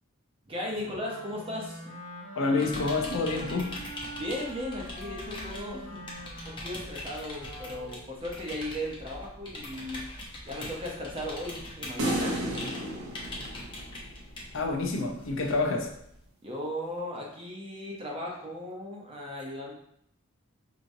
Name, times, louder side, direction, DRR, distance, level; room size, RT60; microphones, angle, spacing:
voice 1, 0.5-1.8 4.1-6.0 6.4-12.4 16.4-19.7, left 1 dB, 25° right, -2 dB, 0.8 m, -37 dB
Wind instrument woodwind instrument, 0.7-8.1, equal, 85° left, 1.1 m, -44 dB
voice 2, 2.4-3.7 14.5-15.9, left 3 dB, 65° left, 1 dB, 0.6 m, -28 dB
sound 1, 2.6-16.3, left 1 dB, 25° left, 0.8 m, -42 dB
sound 2, 12.0-14.4, right 1 dB, 90° right, 0.8 m, -32 dB
4.9 x 2.9 x 2.6 m, 0.72 s
head